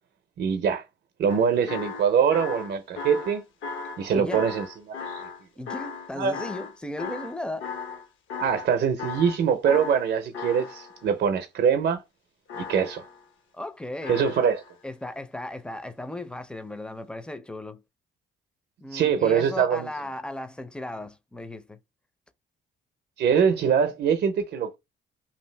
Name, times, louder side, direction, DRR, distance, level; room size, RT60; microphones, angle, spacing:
voice 1, 0.4-0.8 1.2-3.4 4.0-5.2 6.2-6.3 8.4-12.0 12.6-13.0 14.1-14.6 18.9-19.9 23.2-24.8, right 7 dB, 60° right, 0.6 m, -23 dB
sound 1, 1.3-8.0 8.3-8.7 9.0-11.1 12.5-13.2 14.0-14.7 15.7-15.8, left 5 dB, 75° left, 0.7 m, -37 dB
voice 2, 4.1-4.5 5.6-7.7 13.5-14.5 14.8-17.8 18.8-21.8, left 1 dB, 5° left, 0.4 m, -36 dB
2.7 x 2.5 x 3.2 m
cardioid pair, 90°, 20 cm